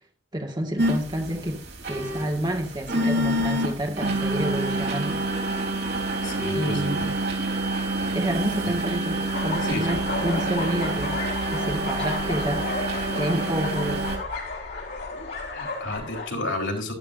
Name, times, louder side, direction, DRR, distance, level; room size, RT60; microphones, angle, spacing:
voice 1, 0.3-5.2 6.5-7.1 8.1-11.2 11.5-12.7 13.2-14.0, right 1 dB, 25° right, 2.0 m, -29 dB
sound 1, 0.8-14.2, right 1 dB, 55° right, 3.6 m, -27 dB
voice 2, 6.2-7.2 8.7-8.8 9.6-9.9 15.5-16.9, left 2 dB, 75° left, 4.0 m, -31 dB
sound 2, 9.3-16.3, left 3 dB, 60° left, 4.1 m, -33 dB
12.5 x 12.0 x 2.7 m
head